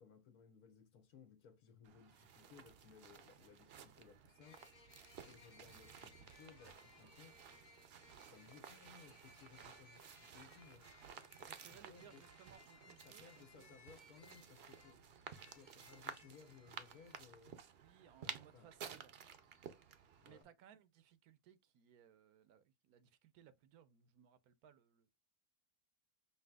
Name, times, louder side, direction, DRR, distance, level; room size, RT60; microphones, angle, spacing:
voice 1, 0.0-4.7 5.1-7.4 8.3-10.9 11.4-12.2 13.0-15.1 15.5-17.6 18.2-18.7 20.2-20.5, left 6 dB, 80° left, 1.4 m, -62 dB
sound 1, 1.8-20.4, right 7 dB, 60° right, 0.7 m, -55 dB
sound 2, 4.4-17.2, left 3 dB, 40° left, 0.7 m, -65 dB
voice 2, 11.4-13.8 17.7-19.2 20.2-25.1, right 10 dB, 80° right, 1.1 m, -64 dB
5.9 x 2.8 x 2.3 m
omnidirectional pair, 1.6 m